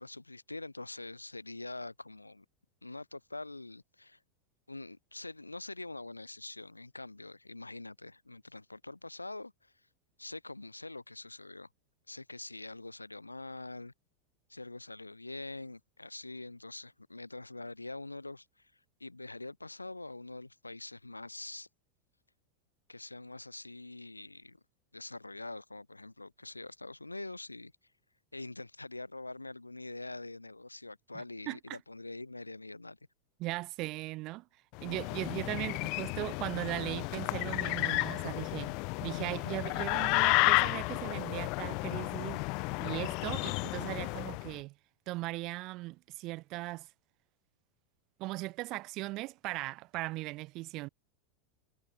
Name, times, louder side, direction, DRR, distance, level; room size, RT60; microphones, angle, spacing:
voice 1, 0.0-2.4 2.8-4.2 4.7-9.7 10.2-11.7 12.1-13.9 14.5-18.7 19.0-21.7 22.9-24.6 24.9-27.7 28.3-33.0, left 2 dB, 85° left, 1.1 m, -44 dB
voice 2, 33.4-34.4 34.8-42.4 42.8-44.7 45.1-46.9 48.2-50.9, right 20 dB, 45° right, 1.2 m, -38 dB
sound 1, 34.8-44.5, left 31 dB, 45° left, 1.2 m, -32 dB
figure-of-eight pair, 85°, 0 cm